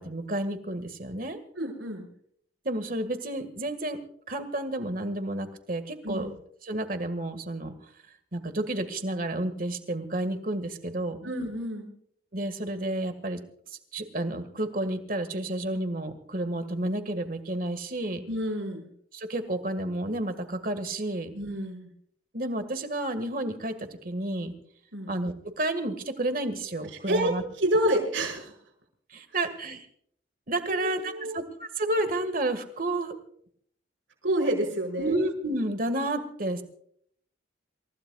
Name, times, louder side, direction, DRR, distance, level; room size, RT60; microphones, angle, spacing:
voice 1, 0.0-1.4 2.7-4.0 4.3-6.3 6.6-7.7 8.3-11.3 12.3-13.4 13.7-18.2 19.1-21.3 22.3-24.5 25.1-27.4 29.1-29.9 30.5-33.1 35.0-36.6, right 1 dB, 45° right, 9 dB, 1.8 m, -31 dB
voice 2, 1.6-2.1 6.0-6.3 11.2-11.9 18.3-18.9 21.3-21.9 24.9-25.1 27.1-28.5 30.6-31.4 34.2-35.2, right 1 dB, 75° right, 1 dB, 5.8 m, -28 dB
28.0 x 16.0 x 2.4 m, 0.65 s
head